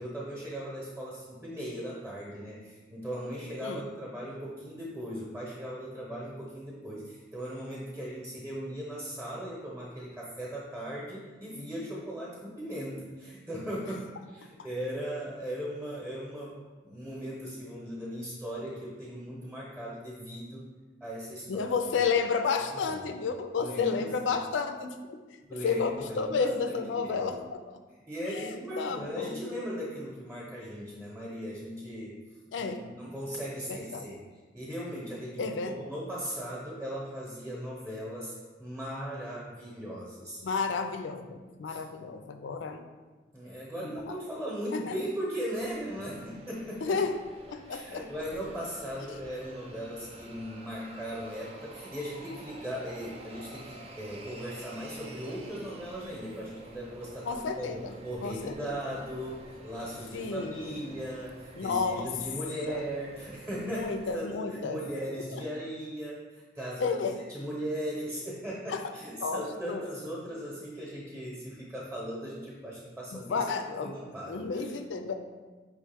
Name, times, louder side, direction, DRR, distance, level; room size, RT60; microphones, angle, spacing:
voice 1, 0.0-20.7 21.0-21.7 22.0-22.1 22.7-23.2 23.6-24.4 25.5-27.4 28.1-32.1 32.6-34.2 34.5-38.3 38.6-40.4 41.7-41.8 43.3-47.0 47.7-66.9 67.3-74.7, equal, 10° right, -6 dB, 0.9 m, -38 dB
voice 2, 21.5-25.2 25.5-27.8 28.3-29.4 32.5-32.8 33.7-34.1 35.4-35.7 40.4-42.8 43.8-43.9 44.7-44.9 46.8-47.1 47.5-48.1 57.3-57.9 58.2-58.7 60.1-60.8 61.6-62.1 62.7-62.8 63.7-64.8 65.3-65.4 66.8-67.2 68.7-68.8 69.2-69.8 73.1-74.0 74.3-75.1, left 5 dB, 85° left, 7 dB, 0.4 m, -31 dB
sound 1, 45.5-64.2, right 2 dB, 35° right, 0.5 m, -49 dB
5.1 x 3.1 x 3.4 m, 1.3 s
head